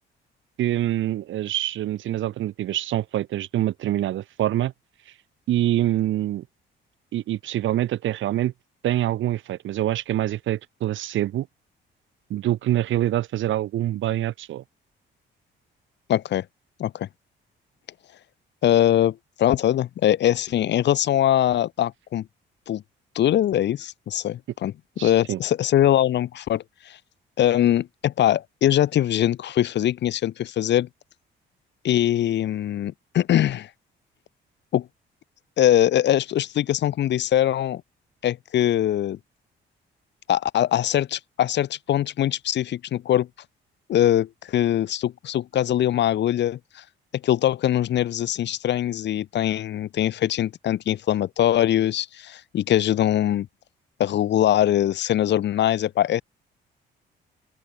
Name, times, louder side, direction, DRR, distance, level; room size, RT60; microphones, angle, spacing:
voice 1, 0.6-4.7 5.5-6.4 7.1-8.5 8.8-11.5 12.3-14.6 25.0-25.4, right 13 dB, 75° right, 1.2 m, -25 dB
voice 2, 16.1-16.4 16.8-17.1 18.6-22.3 22.7-22.8 23.1-24.7 25.0-27.0 27.4-30.9 31.8-33.7 34.7-34.9 35.6-37.8 38.2-39.2 40.3-43.3 43.9-46.8 47.2-53.5 54.0-56.2, left 11 dB, 60° left, 0.8 m, -22 dB
open air
cardioid pair, 90°, 20 cm